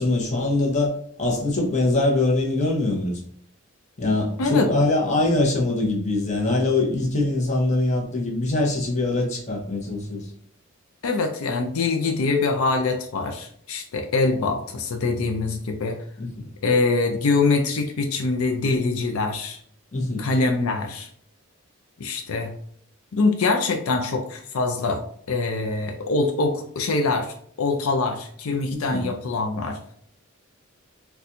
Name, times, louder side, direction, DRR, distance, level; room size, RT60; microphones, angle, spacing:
voice 1, 0.0-3.2 4.0-10.3 16.2-16.3 19.9-20.2 28.7-29.1, left 2 dB, 35° left, -1 dB, 0.8 m, -23 dB
voice 2, 11.0-16.0 16.6-19.6 20.2-21.1 22.0-22.5 23.1-29.8, left 3 dB, 80° left, 4 dB, 0.5 m, -24 dB
4.2 x 2.3 x 2.5 m, 0.63 s
head